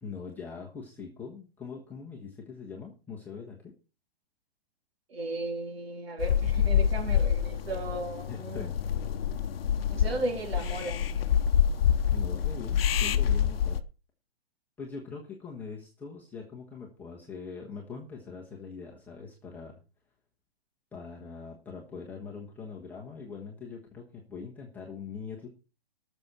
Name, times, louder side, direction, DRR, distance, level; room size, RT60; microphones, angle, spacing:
voice 1, 0.0-3.6 8.3-8.9 12.1-13.8 14.8-19.8 20.9-25.5, left 5 dB, 5° left, 1.3 m, -42 dB
voice 2, 5.1-8.7 9.9-11.1, right 2 dB, 70° right, 3.9 m, -35 dB
sound 1, 6.2-13.8, left 8 dB, 70° left, 0.8 m, -27 dB
18.5 x 6.9 x 4.3 m
hypercardioid pair, 165°, 31 cm